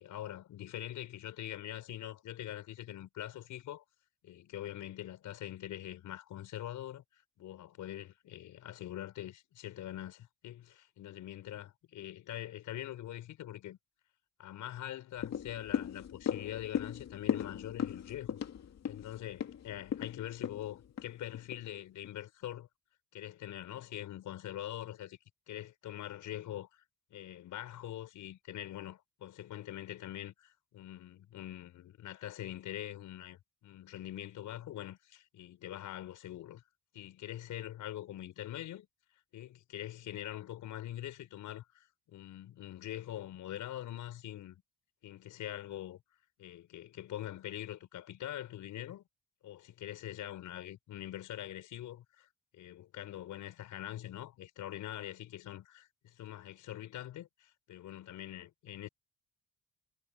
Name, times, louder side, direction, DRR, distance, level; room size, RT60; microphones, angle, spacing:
voice 1, 0.0-3.8 4.2-13.8 14.4-18.4 18.9-22.7 23.1-25.2 25.5-26.8 27.1-36.6 36.9-38.9 39.3-44.6 45.0-46.0 46.4-49.0 49.4-52.3 52.5-55.9 56.2-58.9, left 12 dB, 80° left, 5.4 m, -44 dB
sound 1, 15.2-21.7 22.0-22.1, left 8 dB, 60° left, 2.5 m, -37 dB
cardioid pair, 90°, 30 cm